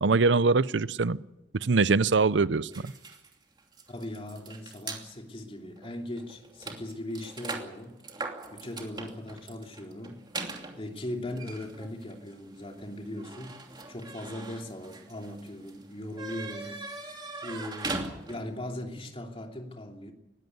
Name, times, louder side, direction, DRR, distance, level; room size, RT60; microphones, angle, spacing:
voice 1, 0.0-1.2 1.5-2.9, right 4 dB, 85° right, 0.7 m, -23 dB
sound 1, 2.7-5.0 5.8-5.9 6.2-18.6, right 3 dB, 25° right, 2.8 m, -41 dB
voice 2, 3.9-8.0 8.2-20.1, left 1 dB, 30° left, 2.9 m, -39 dB
20.0 x 16.0 x 9.6 m
head